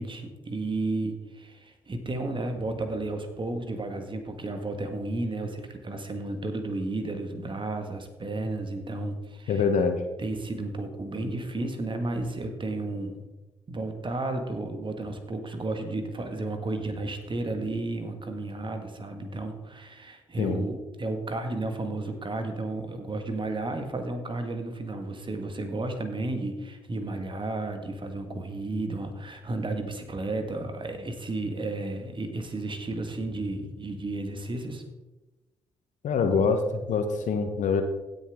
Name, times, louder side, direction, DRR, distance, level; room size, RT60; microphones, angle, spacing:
voice 1, 0.0-9.6 10.2-13.2 13.7-34.8, right 2 dB, 35° right, 6 dB, 1.9 m, -33 dB
voice 2, 9.5-10.0 20.4-20.6 36.0-37.8, left 5 dB, 60° left, 7 dB, 1.1 m, -25 dB
16.5 x 6.8 x 3.7 m, 1.1 s
hypercardioid pair, 40°, 14 cm